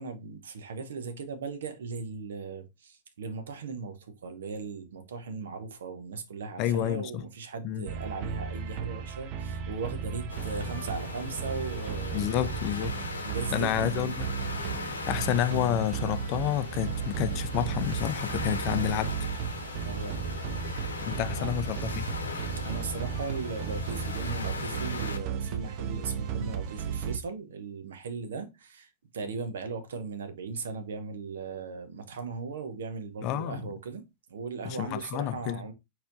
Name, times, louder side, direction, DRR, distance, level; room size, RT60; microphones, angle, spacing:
voice 1, 0.0-12.5 13.2-14.0 19.8-20.2 21.3-21.6 22.6-34.0 34.3-35.7, right 4 dB, 65° right, 0.9 m, -38 dB
voice 2, 6.6-7.2 7.6-7.9 12.1-13.0 13.5-14.3 15.1-19.2 21.0-22.1 33.2-33.6 34.6-35.6, left 12 dB, 40° left, 0.5 m, -29 dB
sound 1, 7.9-27.2, right 7 dB, 40° right, 0.7 m, -34 dB
sound 2, 10.3-25.2, left 3 dB, 75° left, 0.8 m, -39 dB
4.3 x 4.3 x 2.6 m
figure-of-eight pair, 90°, 0 cm